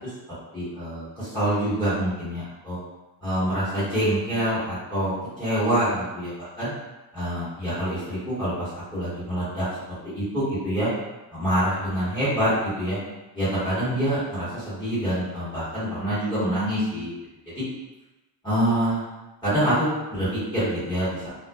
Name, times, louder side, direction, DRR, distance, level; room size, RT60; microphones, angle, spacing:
voice 1, 0.5-2.8 3.2-6.3 6.6-6.7 7.1-9.6 10.1-10.9 11.3-13.0 13.3-17.1 17.5-17.6 18.4-19.0 19.4-21.3, right 1 dB, 10° left, -13 dB, 1.2 m, -26 dB
2.4 x 2.2 x 2.3 m, 1.0 s
cardioid pair, 150°, 40 cm